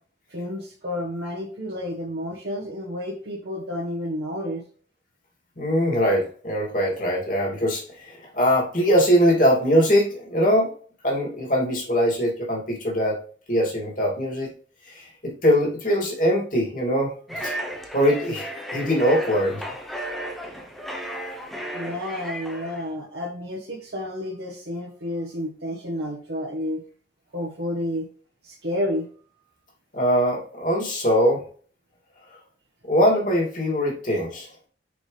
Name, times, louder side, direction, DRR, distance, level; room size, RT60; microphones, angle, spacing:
voice 1, 0.3-4.6 20.0-20.7 21.7-26.8 27.3-28.1 28.4-29.1, left 1 dB, 65° right, -2 dB, 1.2 m, -31 dB
voice 2, 5.6-10.7 11.0-13.2 13.5-14.5 14.9-17.5 17.9-19.6 29.9-31.4 32.9-34.7, equal, 45° left, -1 dB, 2.6 m, -22 dB
sound 1, 17.3-22.9, equal, ahead, 0.7 m, -34 dB
6.3 x 4.9 x 3.3 m, 0.43 s
head